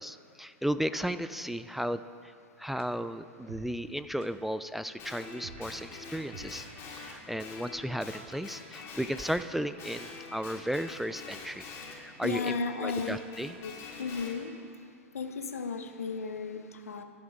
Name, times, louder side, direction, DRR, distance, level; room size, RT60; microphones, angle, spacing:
voice 1, 0.0-6.7 7.0-13.5, equal, ahead, 12 dB, 0.3 m, -35 dB
sound 1, 1.4-1.5 2.8-2.9 3.5-3.7 4.2-4.3 5.4-5.7 6.3-6.6 7.0-7.1, right 7 dB, 60° right, 1.4 m, -48 dB
Guitar, 5.0-9.4 9.8-14.4, left 4 dB, 35° left, 3.9 m, -45 dB
voice 2, 12.2-13.2 13.6-13.7 14.0-14.5 15.1-17.0, left 5 dB, 85° left, 8 dB, 1.0 m, -34 dB
25.5 x 8.6 x 3.7 m, 2.2 s
hypercardioid pair, 105°, 8 cm